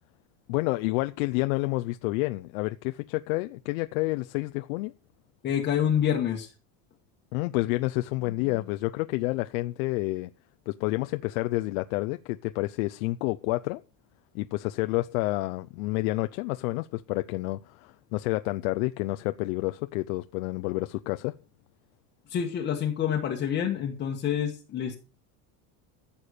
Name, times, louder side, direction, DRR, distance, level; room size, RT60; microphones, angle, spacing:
voice 1, 0.5-4.9 7.3-10.3 10.7-13.8 14.3-21.3, left 21 dB, 85° left, 0.8 m, -29 dB
voice 2, 5.4-6.5 22.3-25.0, left 9 dB, 25° left, 1.4 m, -27 dB
14.5 x 7.2 x 6.6 m
cardioid pair, 180°, 41 cm